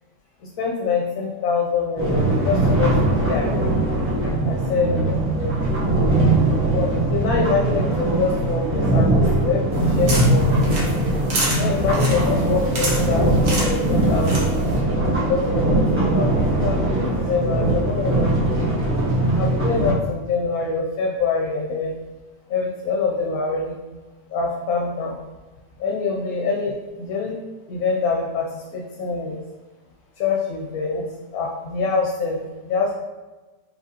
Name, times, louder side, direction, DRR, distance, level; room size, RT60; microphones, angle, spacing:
voice 1, 0.6-3.5 4.4-5.5 6.7-10.6 11.5-14.5 15.3-18.4 19.3-21.9 22.5-23.8 24.3-25.2 25.8-27.4 27.7-29.4 30.2-31.0 31.3-32.9, left 4 dB, 70° left, -1 dB, 1.0 m, -25 dB
sound 1, 2.0-19.9, right 1 dB, 10° right, 0.8 m, -20 dB
sound 2, 9.7-14.8, right 1 dB, 60° right, 1.4 m, -30 dB
4.8 x 3.5 x 2.8 m, 1.2 s
omnidirectional pair, 1.6 m